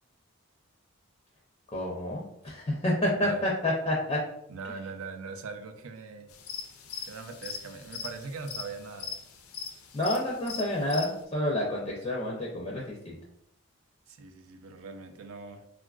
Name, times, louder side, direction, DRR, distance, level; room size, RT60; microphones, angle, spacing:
voice 1, 1.7-4.2 9.9-13.2, left 1 dB, 25° left, -3 dB, 0.4 m, -29 dB
voice 2, 4.5-6.3 7.1-9.1 14.1-15.7, right 4 dB, 80° right, 7 dB, 0.4 m, -41 dB
sound 1, 6.3-11.2, left 7 dB, 85° left, 0.4 m, -41 dB
3.6 x 2.4 x 2.3 m, 0.77 s
head